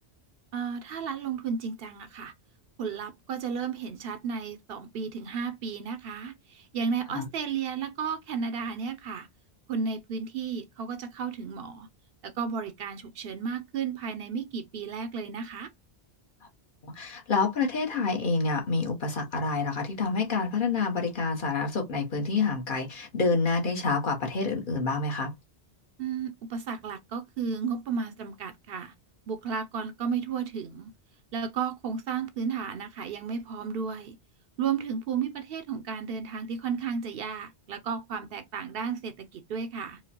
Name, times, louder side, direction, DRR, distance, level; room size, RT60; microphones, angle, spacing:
voice 1, 0.5-2.3 2.8-9.3 9.7-11.9 12.2-15.7 26.0-28.9 29.3-30.9 31.3-34.2 34.6-40.0, right 6 dB, 65° right, 0.7 m, -33 dB
voice 2, 16.8-25.3, left 4 dB, 50° left, 1.0 m, -28 dB
4.6 x 2.0 x 2.8 m
omnidirectional pair, 1.1 m